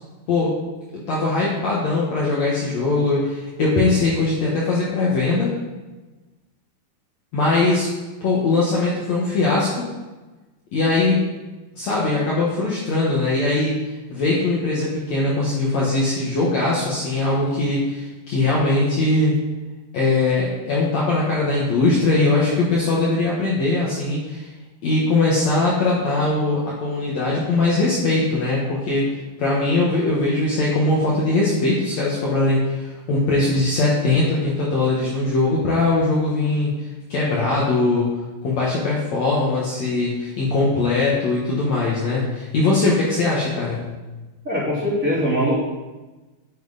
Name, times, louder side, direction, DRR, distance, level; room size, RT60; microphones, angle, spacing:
voice 1, 1.1-5.5 7.3-7.9 8.2-9.9 10.7-11.3 11.7-13.7 14.1-19.3 19.9-24.4 24.8-36.7 37.1-38.1 38.4-43.9, left 2 dB, 85° left, -5 dB, 1.5 m, -21 dB
voice 2, 44.4-45.5, equal, 20° right, -10 dB, 3.1 m, -21 dB
10.0 x 7.9 x 4.1 m, 1.2 s
omnidirectional pair, 5.4 m